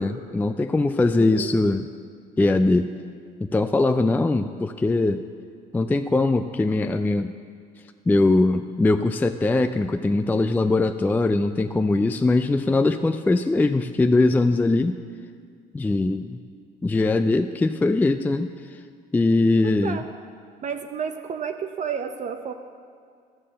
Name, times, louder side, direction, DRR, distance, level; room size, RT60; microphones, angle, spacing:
voice 1, 0.0-1.9 2.4-2.9 3.4-5.2 5.7-7.3 8.1-15.0 15.7-16.4 16.8-18.8 19.1-20.0, left 2 dB, 10° left, 9 dB, 0.3 m, -21 dB
voice 2, 1.2-1.7 19.6-20.0 20.6-22.5, right 7 dB, 45° right, 6 dB, 0.6 m, -31 dB
12.5 x 6.7 x 7.5 m, 2.1 s
cardioid pair, 110°, 17 cm